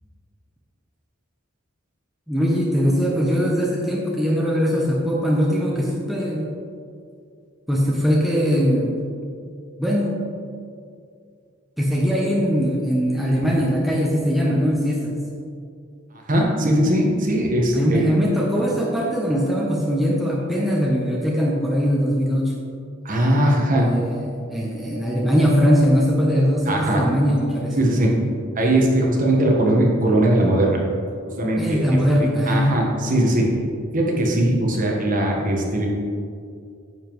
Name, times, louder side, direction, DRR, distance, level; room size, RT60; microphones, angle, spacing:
voice 1, 2.3-6.5 7.7-9.0 9.8-10.2 11.8-15.2 17.7-22.5 23.7-27.8 31.6-32.8, equal, ahead, -4 dB, 0.8 m, -21 dB
voice 2, 16.3-18.1 23.0-23.9 26.7-27.0 27.7-28.1 28.5-30.8 31.4-31.8 32.2-33.6 33.9-35.9, right 1 dB, 40° right, -1 dB, 1.3 m, -20 dB
9.7 x 7.3 x 3.1 m, 2.3 s
head